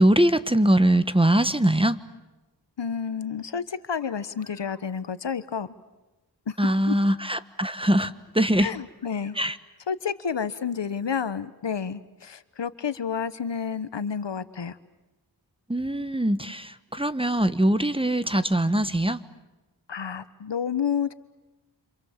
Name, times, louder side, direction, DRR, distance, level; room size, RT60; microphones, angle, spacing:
voice 1, 0.0-2.0 6.6-8.7 9.3-9.6 15.7-19.2, right 1 dB, 10° right, 12 dB, 1.2 m, -22 dB
voice 2, 2.8-5.7 6.5-6.9 8.6-9.4 9.9-14.8 19.9-21.1, left 7 dB, 70° left, 13 dB, 1.2 m, -30 dB
sound 1, 4.0-4.9 6.5-7.5 8.7-9.5, equal, 15° left, 7.2 m, -55 dB
29.5 x 27.0 x 7.4 m, 1.1 s
wide cardioid pair, 50°, 44 cm